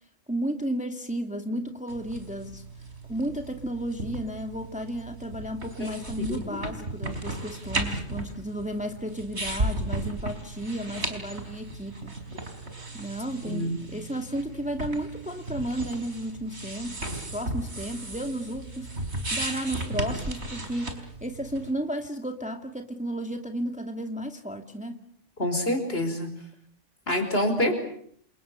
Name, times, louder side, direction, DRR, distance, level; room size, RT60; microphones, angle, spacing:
voice 1, 0.3-2.6 3.1-12.1 12.9-18.9 19.3-20.9 21.2-25.0, right 1 dB, 5° right, 5 dB, 2.1 m, -33 dB
sound 1, 1.9-21.7, right 2 dB, 60° right, 4.8 m, -35 dB
voice 2, 13.4-13.8 25.4-26.3 27.1-27.7, left 1 dB, 50° left, 6 dB, 5.3 m, -26 dB
29.5 x 27.5 x 6.9 m, 0.65 s
omnidirectional pair, 1.3 m